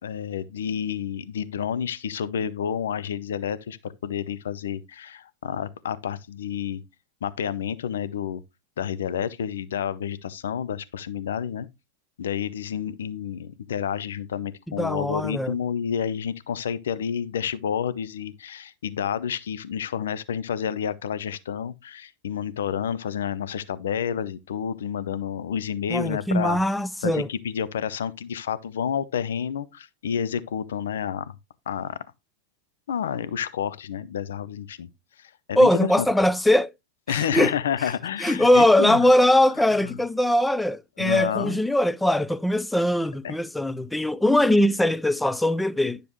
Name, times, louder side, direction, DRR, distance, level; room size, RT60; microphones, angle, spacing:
voice 1, 0.0-6.8 7.2-8.4 8.8-11.7 12.2-26.6 27.0-31.3 31.7-32.0 32.9-34.9 35.2-36.1 37.1-39.0 41.0-41.6 43.2-43.3, left 8 dB, 75° left, 0.7 m, -29 dB
voice 2, 14.8-15.6 25.9-27.3 35.6-36.7 37.1-37.5 37.8-37.9 38.2-46.0, left 1 dB, 5° left, 0.4 m, -21 dB
10.0 x 6.8 x 3.1 m
hypercardioid pair, 115°, 0 cm